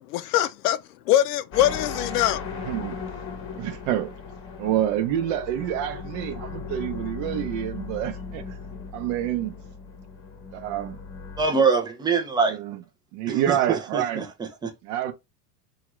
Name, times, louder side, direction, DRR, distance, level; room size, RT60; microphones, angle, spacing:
voice 1, 0.1-0.8 1.1-2.5, left 12 dB, 70° left, 0.5 m, -22 dB
sound 1, 1.5-11.5, left 5 dB, 25° left, 0.9 m, -37 dB
voice 2, 3.6-4.1 4.6-8.4 8.9-9.5 10.5-11.0 12.5-12.8 13.1-14.2 14.8-15.1, right 11 dB, 55° right, 0.7 m, -27 dB
voice 3, 11.4-12.6 13.3-14.7, right 5 dB, 10° right, 0.4 m, -24 dB
2.8 x 2.4 x 3.0 m
hypercardioid pair, 105°, 48 cm